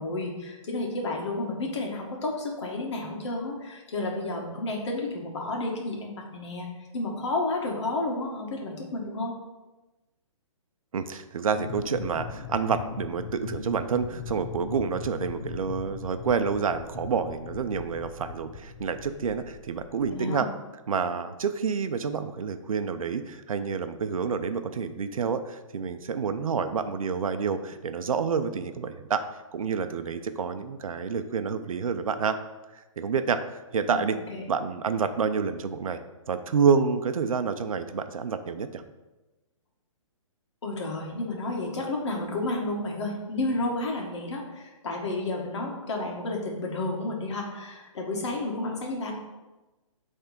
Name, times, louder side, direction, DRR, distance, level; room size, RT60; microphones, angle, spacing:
voice 1, 0.0-9.4 20.1-20.5 33.9-34.5 40.6-49.1, left 2 dB, 55° left, 0 dB, 1.9 m, -31 dB
voice 2, 10.9-20.5 20.9-29.2 29.5-32.4 32.7-33.4 33.7-34.2 34.5-36.0 36.3-38.8, right 6 dB, 90° right, 9 dB, 0.7 m, -28 dB
sound 1, 11.5-20.1, left 5 dB, 30° left, 0.6 m, -39 dB
8.0 x 3.6 x 5.1 m, 1.1 s
hypercardioid pair, 165°, 17 cm